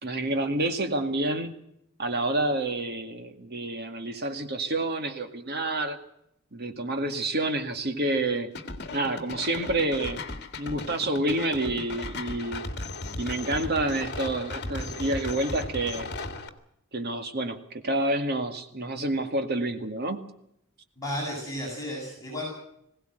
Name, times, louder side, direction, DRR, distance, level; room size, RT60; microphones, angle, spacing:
voice 1, 0.0-1.5 2.0-6.0 6.5-8.5 8.9-10.2 10.6-12.7 13.2-16.1 16.9-20.2, right 2 dB, 45° right, 7 dB, 2.1 m, -28 dB
sound 1, 8.5-16.5, left 2 dB, 45° left, 2.1 m, -36 dB
voice 2, 21.0-22.4, equal, 15° left, -3 dB, 7.9 m, -33 dB
21.5 x 17.0 x 8.0 m, 0.77 s
head